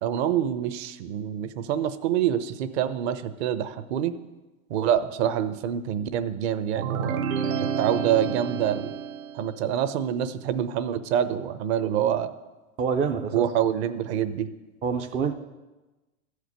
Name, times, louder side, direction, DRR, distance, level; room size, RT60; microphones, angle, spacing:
voice 1, 0.0-4.1 4.7-7.2 7.8-9.0 9.4-12.3 13.3-14.5, right 10 dB, 50° right, 11 dB, 0.9 m, -26 dB
sound 1, 6.8-9.6, right 7 dB, 75° right, 1.1 m, -29 dB
voice 2, 12.8-13.5 14.8-15.3, right 6 dB, 15° right, 5 dB, 0.3 m, -26 dB
13.5 x 5.0 x 8.1 m, 1.1 s
hypercardioid pair, 120°, 42 cm